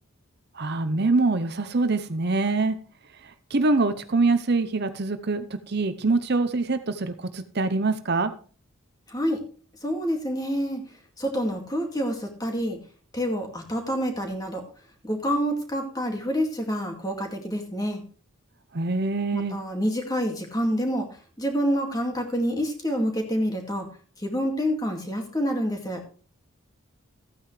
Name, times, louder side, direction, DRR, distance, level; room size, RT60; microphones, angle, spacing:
voice 1, 0.5-2.8 3.2-8.3 18.7-19.6, right 3 dB, 50° right, 10 dB, 0.7 m, -24 dB
voice 2, 9.1-9.4 9.8-10.8 11.2-12.8 13.1-14.6 15.0-18.0 19.3-21.1 21.4-23.9 24.2-26.0, equal, 15° left, 3 dB, 2.2 m, -27 dB
14.5 x 9.2 x 3.2 m, 0.39 s
head